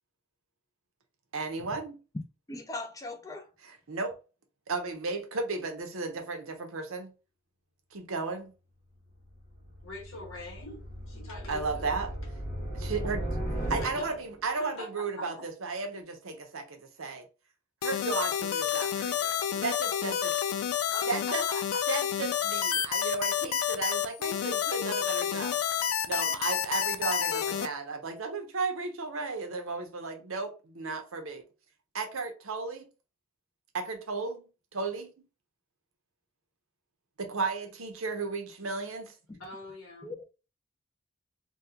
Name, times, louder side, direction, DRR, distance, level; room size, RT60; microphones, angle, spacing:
voice 1, 1.3-2.0 3.6-4.1 4.7-7.1 7.9-8.5 11.5-12.1 12.7-13.2 13.7-17.3 17.8-20.3 21.1-21.4 21.9-31.4 31.9-32.9 33.7-35.1 37.2-39.1, right 4 dB, 70° right, 0.8 m, -34 dB
voice 2, 2.5-3.4 40.0-40.2, left 2 dB, 15° left, 0.5 m, -39 dB
sound 1, 9.1-14.4, right 1 dB, 45° left, 1.7 m, -37 dB
voice 3, 9.8-11.9 13.8-14.2 14.6-15.5 20.9-21.8 39.4-40.1, left 1 dB, 65° left, 1.3 m, -43 dB
sound 2, 17.8-27.7, left 9 dB, 85° left, 0.4 m, -29 dB
3.6 x 2.3 x 2.8 m
head